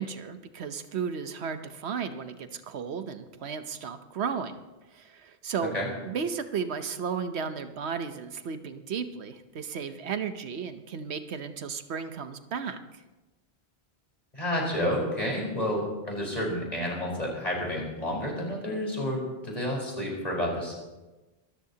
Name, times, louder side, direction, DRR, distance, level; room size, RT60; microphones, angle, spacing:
voice 1, 0.0-4.6 4.9-13.0, right 6 dB, 85° right, 9 dB, 1.1 m, -34 dB
voice 2, 14.3-20.7, left 1 dB, 40° left, -2 dB, 4.8 m, -30 dB
24.0 x 13.5 x 2.9 m, 1.1 s
omnidirectional pair, 1.1 m